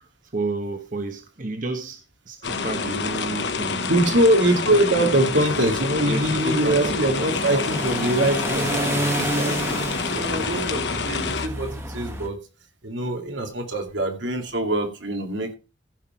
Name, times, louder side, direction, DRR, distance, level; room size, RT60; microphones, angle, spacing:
voice 1, 0.0-2.0 2.3-3.9 4.9-5.1 5.4-5.5 6.0-6.8, right 2 dB, 45° right, 5 dB, 1.3 m, -31 dB
sound 1, 2.4-11.5, left 4 dB, 65° left, 1.1 m, -28 dB
voice 2, 3.9-9.8 10.1-12.4 12.8-15.5, right 1 dB, 80° right, 4 dB, 2.5 m, -23 dB
sound 2, 5.2-12.3, right 1 dB, 15° right, 1.5 m, -30 dB
15.0 x 5.9 x 4.5 m, 0.29 s
head